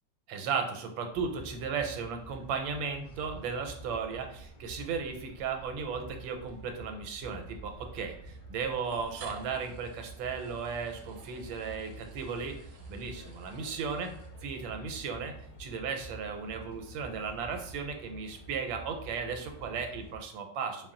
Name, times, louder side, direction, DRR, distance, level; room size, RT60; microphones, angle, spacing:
voice 1, 0.3-12.6 12.9-14.1 14.4-15.3 15.6-20.9, right 5 dB, 90° right, 5 dB, 1.4 m, -35 dB
sound 1, 1.1-20.2, right 2 dB, 70° left, 1.6 m, -48 dB
sound 2, 6.5-6.6 7.7-7.8 8.8-14.8, right 5 dB, 70° right, 0.9 m, -54 dB
4.0 x 2.1 x 3.7 m, 0.65 s
omnidirectional pair, 2.1 m